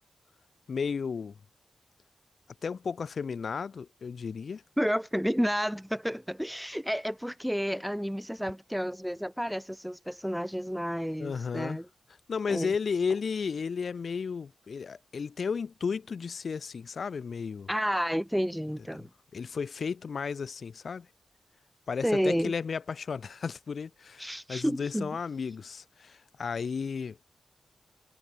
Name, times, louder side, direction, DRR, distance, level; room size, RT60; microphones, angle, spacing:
voice 1, 0.7-1.4 2.6-4.6 11.2-11.8 12.3-17.7 19.0-21.1 21.9-27.2, left 5 dB, 65° left, 1.5 m, -33 dB
voice 2, 4.8-11.9 12.5-12.7 17.7-19.1 22.0-22.5 24.2-25.2, equal, ahead, 0.8 m, -30 dB
wide cardioid pair, 90°, 0 cm